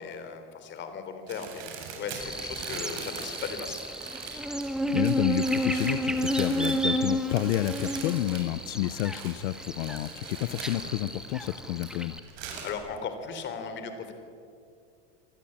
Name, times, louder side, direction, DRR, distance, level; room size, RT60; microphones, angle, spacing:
voice 1, 0.0-3.8 12.4-14.1, left 6 dB, 30° left, 8 dB, 3.7 m, -37 dB
sound 1, 1.3-11.8 12.2-12.7, right 6 dB, 70° right, 7.7 m, -42 dB
Buzz, 2.2-12.2, equal, ahead, 1.7 m, -31 dB
voice 2, 4.9-12.2, left 15 dB, 85° left, 15 dB, 0.9 m, -30 dB
27.0 x 20.5 x 8.9 m, 2.4 s
supercardioid pair, 150°, 35 cm